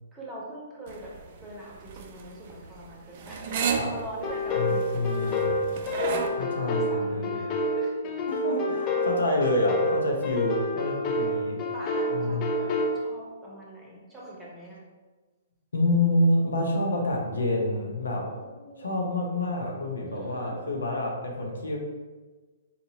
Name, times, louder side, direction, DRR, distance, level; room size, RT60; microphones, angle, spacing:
voice 1, 0.1-1.1 1.4-5.5 6.0-7.5 7.8-7.9 8.7-9.2 11.0-12.7 13.0-14.8 18.1-19.0 20.1-21.0, right 1 dB, 5° right, -6 dB, 1.0 m, -43 dB
sound 1, 0.9-6.3, right 6 dB, 45° right, 0.4 m, -33 dB
sound 2, 4.2-13.0, left 1 dB, 30° left, 0.4 m, -28 dB
voice 2, 4.6-5.6 6.4-7.4 8.3-11.6 12.1-12.5 15.7-18.3 18.8-21.8, left 1 dB, 80° left, 0 dB, 0.8 m, -27 dB
4.1 x 2.6 x 2.9 m, 1.3 s
hypercardioid pair, 130°, 0 cm